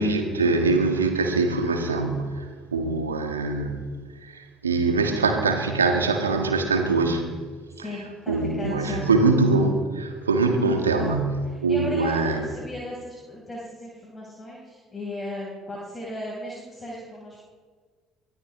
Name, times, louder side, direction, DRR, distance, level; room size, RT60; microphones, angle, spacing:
voice 1, 0.0-2.4 2.7-3.8 4.3-7.3 8.3-11.4 11.6-12.4, right 3 dB, 80° right, 5 dB, 1.6 m, -23 dB
voice 2, 7.8-9.1 10.6-11.1 11.4-17.4, left 1 dB, 20° left, -5 dB, 4.9 m, -36 dB
23.5 x 17.5 x 3.3 m, 1.5 s
figure-of-eight pair, 55°, 0 cm